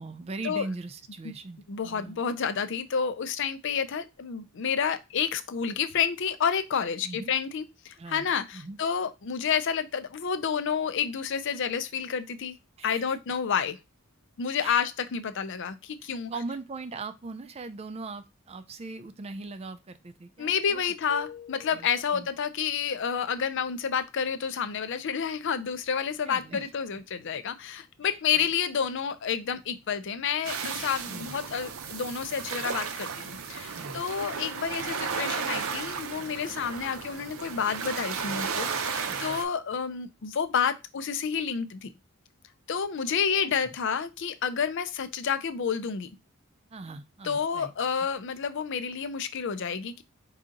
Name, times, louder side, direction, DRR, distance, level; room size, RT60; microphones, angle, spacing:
voice 1, 0.0-2.2 7.0-7.3 8.0-8.8 12.8-13.1 14.6-14.9 16.3-20.9 21.7-22.3 26.3-26.7 28.0-28.5 31.1-31.4 33.7-34.0 39.0-39.4 43.4-43.8 46.7-47.7, right 3 dB, 30° right, 9 dB, 0.4 m, -40 dB
voice 2, 1.7-12.6 12.8-13.8 14.4-16.3 20.4-41.9 42.7-46.1 47.2-50.0, left 7 dB, 55° left, 11 dB, 0.5 m, -29 dB
sound 1, 21.1-22.3, left 7 dB, 85° left, 0.9 m, -45 dB
sound 2, 30.4-39.4, right 6 dB, 65° right, 0.6 m, -34 dB
4.8 x 2.8 x 3.8 m, 0.24 s
head